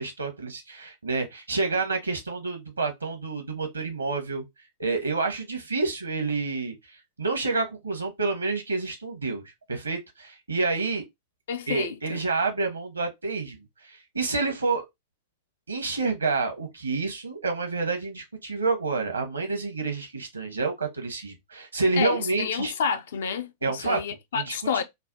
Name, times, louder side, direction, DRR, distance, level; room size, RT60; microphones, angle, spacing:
voice 1, 0.0-4.4 4.8-9.4 9.7-11.0 11.7-14.8 15.7-22.7 23.6-24.0 24.3-24.8, right 3 dB, 80° right, 0.9 m, -28 dB
voice 2, 11.5-12.2 22.0-24.8, left 7 dB, 60° left, 0.4 m, -29 dB
3.2 x 2.1 x 2.7 m
figure-of-eight pair, 95°, 0 cm